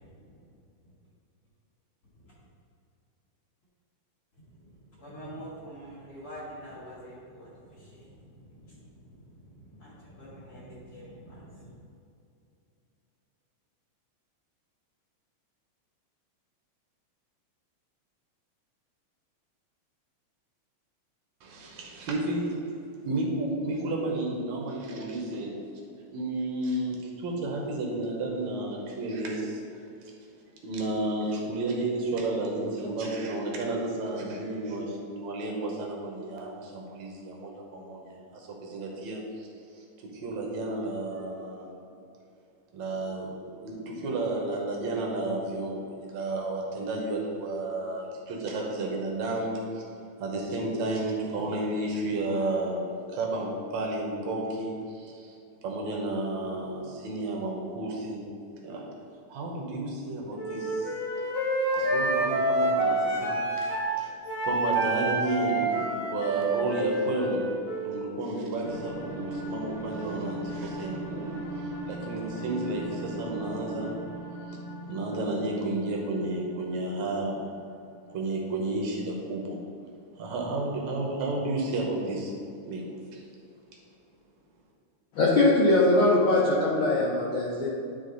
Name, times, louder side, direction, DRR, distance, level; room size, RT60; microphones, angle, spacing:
voice 1, 5.0-11.7, equal, 40° left, -6 dB, 1.7 m, -46 dB
voice 2, 21.4-22.6 23.1-25.8 26.1-29.6 30.6-39.5 39.8-41.7 42.7-43.3 43.6-49.8 50.2-52.8 53.1-55.3 55.6-58.3 58.6-58.9 59.3-60.9 61.7-64.1 64.4-67.4 67.8-73.9 74.5-74.6 74.9-77.4 78.1-79.6 80.1-82.8 83.1-83.2, right 2 dB, 70° right, -1 dB, 2.3 m, -32 dB
Wind instrument woodwind instrument, 60.3-63.9 64.2-68.0, right 2 dB, 25° left, 0.5 m, -28 dB
sound 1, 68.6-78.0, right 1 dB, 45° right, 0.9 m, -39 dB
voice 3, 85.1-87.7, left 2 dB, 70° left, -5 dB, 1.2 m, -21 dB
11.0 x 3.7 x 3.9 m, 2.6 s
omnidirectional pair, 3.4 m